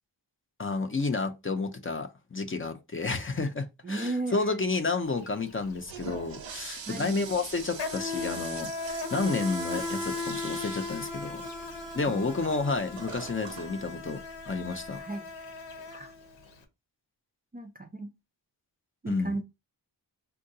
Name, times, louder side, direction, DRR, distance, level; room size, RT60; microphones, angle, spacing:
voice 1, 0.6-11.4 11.9-15.0 19.1-19.4, left 3 dB, 30° left, 0.5 m, -31 dB
voice 2, 3.8-4.6 6.8-7.2 12.1-12.3 15.0-15.3 15.9-16.1 17.5-18.1 19.0-19.4, right 2 dB, 25° right, 0.3 m, -35 dB
Insect, 5.1-5.3 5.5-16.5, left 3 dB, 80° left, 0.9 m, -37 dB
Toilet flush, 5.6-15.0, right 6 dB, 85° right, 0.7 m, -44 dB
3.7 x 2.2 x 2.7 m
wide cardioid pair, 100°, 43 cm